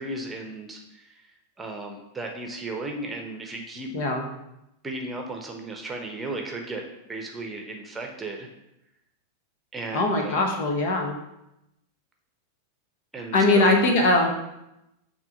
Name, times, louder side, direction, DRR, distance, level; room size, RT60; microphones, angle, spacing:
voice 1, 0.0-3.9 4.8-8.5 9.7-10.5 13.1-13.7, right 2 dB, 15° right, 2 dB, 1.0 m, -35 dB
voice 2, 3.9-4.2 9.9-11.2 13.3-14.3, left 2 dB, 50° left, 2 dB, 1.2 m, -21 dB
7.3 x 3.1 x 5.4 m, 0.87 s
figure-of-eight pair, 90°, 0 cm